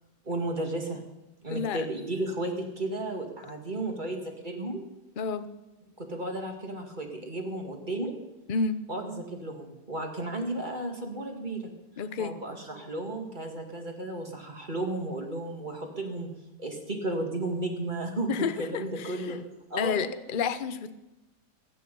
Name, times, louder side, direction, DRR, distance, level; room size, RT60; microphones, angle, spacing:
voice 1, 0.2-1.0 1.4-4.8 6.0-8.1 8.9-11.7 12.2-16.3 16.6-18.3 18.6-19.4 19.7-20.1, right 2 dB, 30° right, 2 dB, 2.2 m, -33 dB
voice 2, 1.5-1.9 5.2-5.5 8.5-8.8 12.0-12.3 18.3-19.4 19.8-20.9, left 5 dB, 45° left, 12 dB, 0.7 m, -30 dB
23.0 x 9.4 x 5.4 m, 0.98 s
omnidirectional pair, 1.8 m